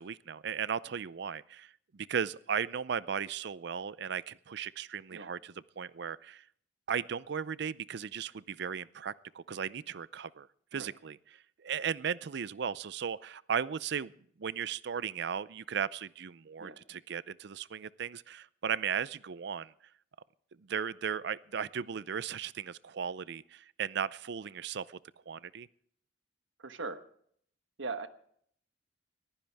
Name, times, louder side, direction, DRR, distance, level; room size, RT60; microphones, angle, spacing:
voice 1, 0.0-6.4 6.9-10.5 10.7-11.2 11.6-14.1 14.4-19.7 20.7-25.0 25.3-25.7, right 7 dB, 65° right, 19 dB, 0.5 m, -36 dB
voice 2, 26.6-27.0 27.8-28.1, right 3 dB, 90° right, 10 dB, 1.3 m, -39 dB
21.5 x 15.5 x 3.5 m, 0.64 s
head